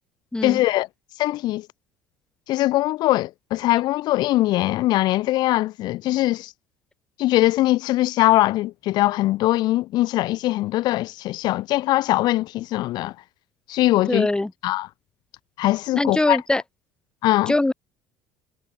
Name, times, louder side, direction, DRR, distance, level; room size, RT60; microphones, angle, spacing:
voice 1, 0.4-0.9 1.2-1.7 2.5-6.5 7.2-13.1 13.7-14.3 14.6-14.9 15.6-16.4 17.2-17.5, left 16 dB, 50° left, 5.5 m, -21 dB
voice 2, 14.1-14.5 15.9-16.6 17.5-17.7, left 2 dB, 10° left, 1.8 m, -22 dB
figure-of-eight pair, 60°, 9 cm